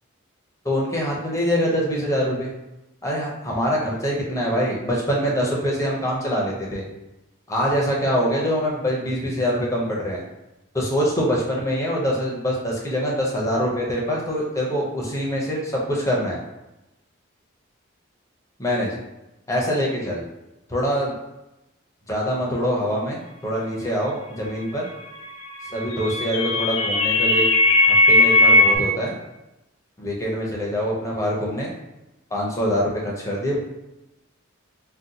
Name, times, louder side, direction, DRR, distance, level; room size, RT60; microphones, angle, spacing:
voice 1, 0.6-2.5 3.0-6.8 7.5-10.2 10.7-16.4 18.6-19.0 19.5-20.2 20.7-21.2 22.1-24.9 25.7-27.5 27.8-29.2 30.0-31.7 32.3-33.6, equal, 15° left, -3 dB, 0.5 m, -24 dB
sound 1, 25.6-28.8, left 2 dB, 75° left, 0.4 m, -17 dB
2.6 x 2.1 x 3.9 m, 0.95 s
head